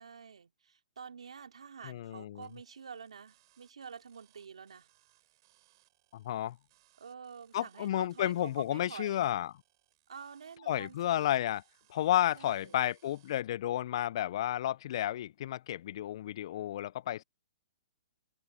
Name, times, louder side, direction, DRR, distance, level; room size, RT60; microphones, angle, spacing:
voice 1, 0.0-4.9 7.0-9.2 10.1-11.3 12.3-12.8, right 6 dB, 85° right, 2.7 m, -48 dB
voice 2, 1.8-2.5 6.1-6.6 7.5-9.5 10.7-11.6 11.9-17.2, left 12 dB, 55° left, 0.3 m, -32 dB
sound 1, 2.4-13.4, right 18 dB, 45° right, 4.5 m, -70 dB
open air
hypercardioid pair, 135°, 3 cm